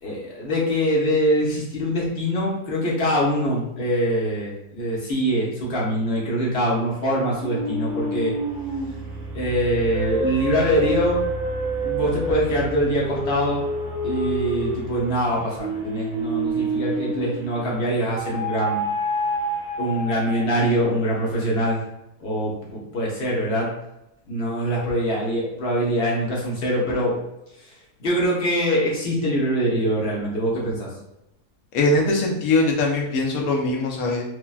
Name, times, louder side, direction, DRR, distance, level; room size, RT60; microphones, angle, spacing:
voice 1, 0.0-8.3 9.3-11.2 11.8-13.6 14.0-18.8 19.8-21.8 22.2-23.7 24.3-27.2 27.6-30.9, equal, 55° left, -4 dB, 0.8 m, -23 dB
sound 1, 7.4-17.6 18.1-20.9, right 1 dB, 60° right, 0.6 m, -28 dB
voice 2, 31.7-34.2, left 2 dB, 70° left, -1 dB, 1.0 m, -21 dB
3.3 x 2.1 x 2.3 m, 0.86 s
omnidirectional pair, 1.7 m